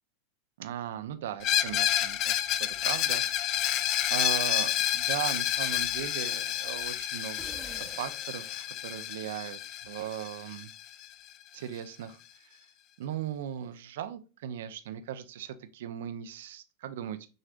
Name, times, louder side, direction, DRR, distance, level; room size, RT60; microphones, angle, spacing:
voice 1, 0.6-10.7 11.5-12.6 13.0-17.3, right 10 dB, 75° right, 10 dB, 0.6 m, -38 dB
Screech, 1.4-11.1, left 12 dB, 45° left, 0.5 m, -30 dB
sound 1, 7.4-9.2, right 4 dB, 20° right, 0.8 m, -48 dB
6.4 x 3.2 x 2.4 m, 0.33 s
hypercardioid pair, 115°, 0 cm